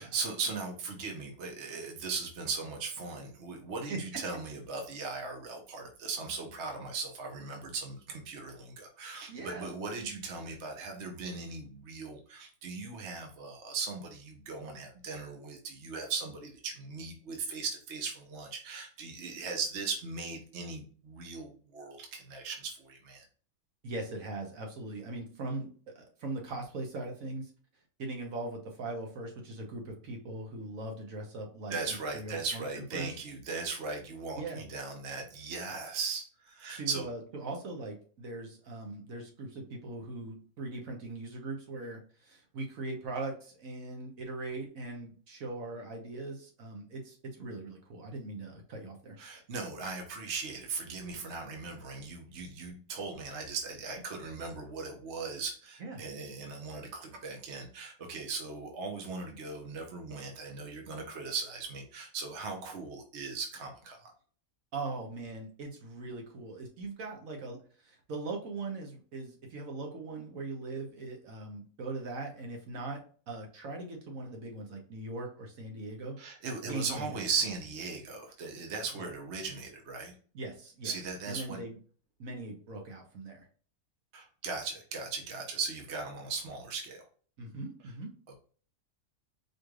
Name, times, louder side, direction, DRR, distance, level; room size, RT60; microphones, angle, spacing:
voice 1, 0.0-23.2 31.7-37.1 49.2-64.1 76.2-80.1 80.8-81.6 84.1-87.0 88.3-88.4, right 4 dB, 55° right, 2 dB, 1.1 m, -38 dB
voice 2, 9.3-9.7 23.8-25.7 25.9-27.5 28.0-32.6 32.9-33.1 34.3-34.6 36.7-49.2 55.8-56.0 64.7-67.6 67.8-76.1 76.7-77.2 78.9-79.0 80.3-80.9 81.3-81.8 82.2-83.5 87.4-88.1, right 2 dB, 75° right, 1 dB, 1.4 m, -40 dB
4.9 x 3.2 x 2.3 m, 0.42 s
omnidirectional pair, 1.5 m